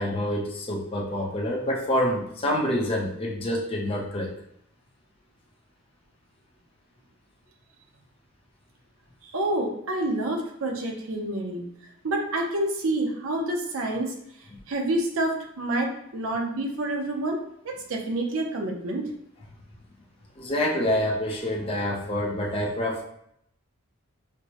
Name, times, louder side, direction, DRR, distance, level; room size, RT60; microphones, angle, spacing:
voice 1, 0.0-4.3 20.4-23.0, left 1 dB, 25° left, -2 dB, 0.5 m, -27 dB
voice 2, 9.2-11.6 12.0-14.1 14.7-17.4 17.6-19.1, right 1 dB, 70° right, 1 dB, 0.7 m, -28 dB
4.3 x 2.1 x 2.8 m, 0.74 s
head